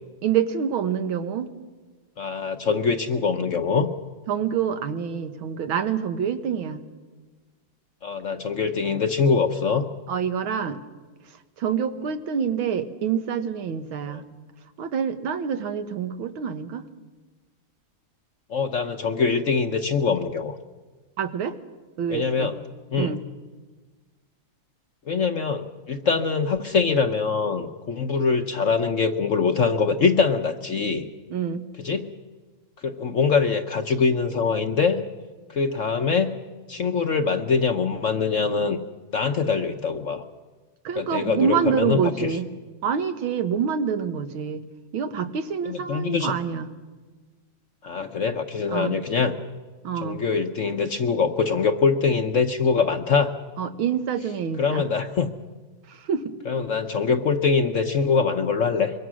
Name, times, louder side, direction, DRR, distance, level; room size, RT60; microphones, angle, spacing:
voice 1, 0.2-1.5 4.3-6.8 10.1-10.8 11.6-14.2 14.8-16.9 21.2-21.6 22.0-22.5 23.0-23.2 31.3-31.7 40.8-42.5 42.8-44.6 44.9-46.7 48.7-49.0 49.8-50.2 53.6-54.9 55.9-56.4, right 7 dB, 90° right, 9 dB, 2.0 m, -26 dB
voice 2, 2.2-3.9 8.0-9.9 14.1-14.2 18.5-20.6 22.1-22.6 22.9-23.2 25.1-31.1 31.8-32.1 32.8-35.0 35.5-36.3 36.7-38.8 39.1-40.2 41.0-42.4 45.6-46.3 47.8-49.4 50.0-53.3 54.6-55.3 56.5-58.9, left 5 dB, 55° left, 7 dB, 0.9 m, -23 dB
24.5 x 23.0 x 6.3 m, 1.3 s
omnidirectional pair, 2.2 m